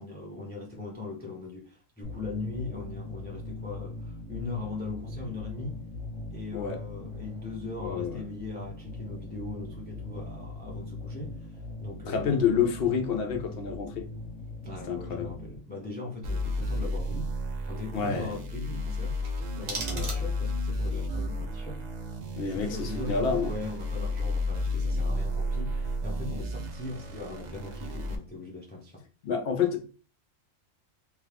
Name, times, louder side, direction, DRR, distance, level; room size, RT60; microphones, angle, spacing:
voice 1, 0.0-5.8 6.3-12.6 14.6-17.3 17.6-21.9 22.5-29.0, left 3 dB, 15° left, 0.3 m, -40 dB
sound 1, 2.0-15.6, left 2 dB, 30° left, 0.9 m, -40 dB
voice 2, 7.8-8.2 12.1-14.1 14.9-15.4 17.9-18.3 19.9-20.2 22.4-23.5 29.2-29.9, left 6 dB, 65° left, 0.6 m, -28 dB
sound 2, 16.2-28.2, left 1 dB, 50° right, 0.5 m, -32 dB
sound 3, 19.2-20.7, right 3 dB, 80° right, 1.3 m, -38 dB
3.0 x 2.3 x 3.3 m
omnidirectional pair, 1.4 m